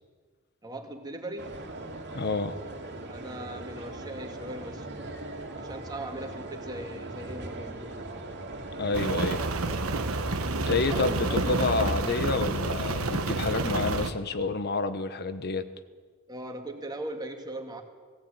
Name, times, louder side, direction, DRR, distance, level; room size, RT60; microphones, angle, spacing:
voice 1, 0.6-1.6 3.0-5.2 5.5-8.1 10.9-11.9 16.3-17.8, right 1 dB, 20° right, 3 dB, 2.3 m, -40 dB
sound 1, 1.4-12.0, right 2 dB, 55° right, 2.8 m, -39 dB
voice 2, 2.1-2.6 8.8-9.4 10.7-15.7, left 3 dB, 50° left, 11 dB, 1.1 m, -29 dB
Rain, 8.9-14.1, right 2 dB, 70° right, 1.3 m, -29 dB
17.5 x 17.5 x 9.0 m, 1.5 s
head